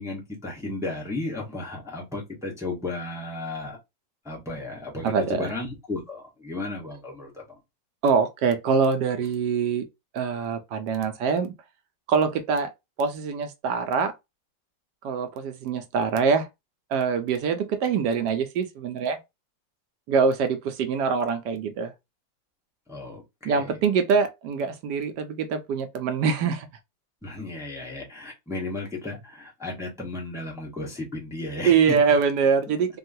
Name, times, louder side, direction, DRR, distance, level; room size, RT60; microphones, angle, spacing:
voice 1, 0.0-3.8 4.2-7.6 22.9-23.8 27.2-31.8, left 2 dB, ahead, 0.8 m, -34 dB
voice 2, 5.0-5.4 8.0-9.8 10.1-11.5 12.1-12.7 13.0-14.1 15.0-16.5 16.9-19.2 20.1-21.9 23.4-26.7 31.6-33.0, right 5 dB, 75° right, 1.1 m, -24 dB
3.6 x 2.3 x 2.6 m
omnidirectional pair, 2.0 m